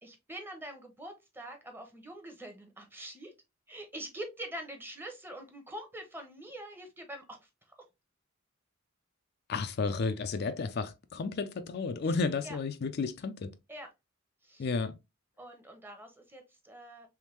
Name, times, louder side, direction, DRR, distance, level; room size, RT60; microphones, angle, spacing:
voice 1, 0.0-3.3 3.7-7.5 12.4-12.6 13.7-13.9 14.4-14.7 15.4-17.1, right 1 dB, 10° right, 0.8 m, -44 dB
voice 2, 9.5-13.5 14.6-15.0, left 4 dB, 55° left, 0.4 m, -32 dB
3.5 x 3.1 x 3.0 m
head